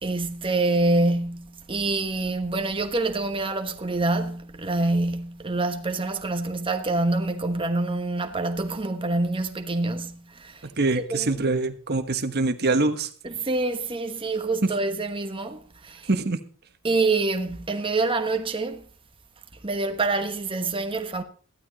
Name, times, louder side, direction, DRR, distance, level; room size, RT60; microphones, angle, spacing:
voice 1, 0.0-11.4 13.2-16.1 16.8-18.8 19.6-21.2, right 2 dB, 25° right, 1.3 m, -26 dB
voice 2, 10.8-13.1 16.1-16.4, right 3 dB, 45° right, 1.4 m, -24 dB
14.5 x 12.5 x 4.1 m
head